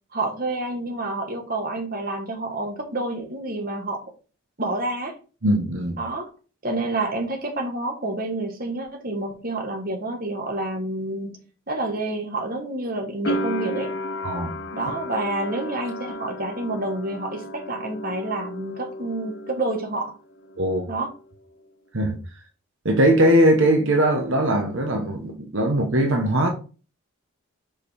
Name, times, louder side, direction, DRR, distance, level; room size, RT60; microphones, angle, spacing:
voice 1, 0.1-4.0 4.6-5.2 6.0-6.2 6.6-11.4 11.7-13.9 14.7-20.1 20.9-21.1, right 2 dB, 40° right, 1.3 m, -28 dB
voice 2, 5.4-6.0 14.2-14.5 20.6-20.9 21.9-22.2 22.8-26.5, right 1 dB, 65° right, 1.0 m, -20 dB
sound 1, 13.2-20.1 20.3-21.2, equal, 55° left, 0.8 m, -33 dB
5.1 x 5.0 x 4.2 m
head